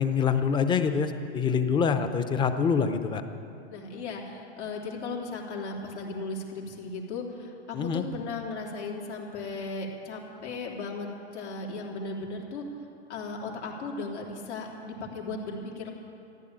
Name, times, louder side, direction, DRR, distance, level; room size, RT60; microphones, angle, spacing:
voice 1, 0.0-3.2 7.7-8.0, left 6 dB, 15° left, 9 dB, 0.6 m, -25 dB
voice 2, 3.7-11.1 11.3-12.6 13.1-15.9, left 3 dB, 80° left, -1 dB, 3.5 m, -36 dB
14.5 x 11.5 x 8.8 m, 2.6 s
hypercardioid pair, 140°, 34 cm